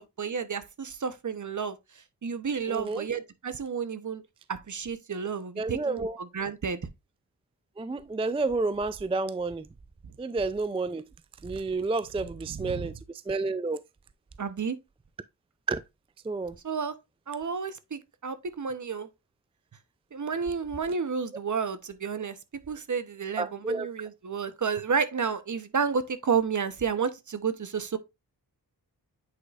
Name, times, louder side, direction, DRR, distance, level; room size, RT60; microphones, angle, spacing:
voice 1, 0.0-1.8 2.2-4.2 4.5-6.8 12.5-12.9 14.4-14.8 16.6-16.9 17.3-19.1 20.1-22.4 22.7-28.0, right 6 dB, 50° right, 0.8 m, -31 dB
voice 2, 2.7-3.1 5.6-6.2 7.8-9.7 10.2-11.0 11.4-12.9 13.3-13.8 15.7-15.8 16.3-16.5 23.4-23.9, right 3 dB, 15° right, 0.3 m, -30 dB
8.7 x 4.9 x 2.4 m
cardioid pair, 60°, 40 cm